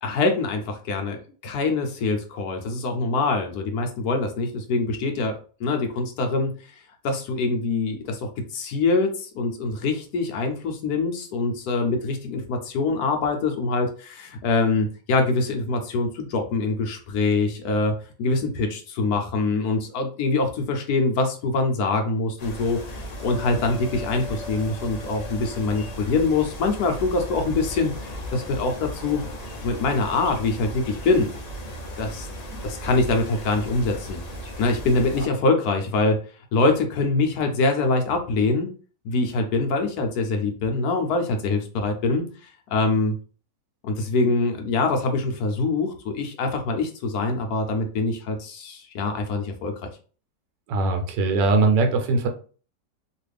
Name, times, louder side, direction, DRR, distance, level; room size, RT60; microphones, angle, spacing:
voice 1, 0.0-1.2 1.4-5.3 5.6-6.5 7.0-17.9 18.2-29.2 29.6-31.3 32.0-32.3 32.6-34.2 34.6-36.2 36.5-38.7 39.0-42.3 42.7-43.1 43.8-49.7, left 3 dB, 70° left, 3 dB, 1.1 m, -24 dB
sound 1, 22.4-35.3, equal, 50° left, 0.4 m, -36 dB
voice 2, 50.7-52.3, right 3 dB, 90° right, 5 dB, 1.4 m, -21 dB
3.1 x 2.5 x 3.3 m, 0.39 s
omnidirectional pair, 1.9 m